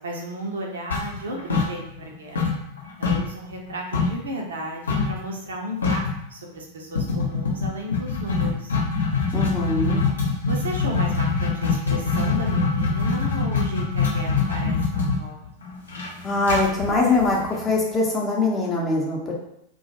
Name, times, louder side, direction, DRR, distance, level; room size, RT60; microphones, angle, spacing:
voice 1, 0.0-2.6 3.0-6.0 6.3-8.8 10.5-15.4, equal, 65° right, 0 dB, 0.5 m, -34 dB
sound 1, 0.9-2.1 2.4-4.3 4.9-5.2 5.5-5.6 5.8-6.2 7.0-17.8, left 4 dB, 70° left, 0.6 m, -24 dB
voice 2, 9.3-10.0 16.2-19.4, left 2 dB, 20° left, -2 dB, 0.6 m, -22 dB
2.3 x 2.1 x 2.8 m, 0.79 s
figure-of-eight pair, 90°, 0 cm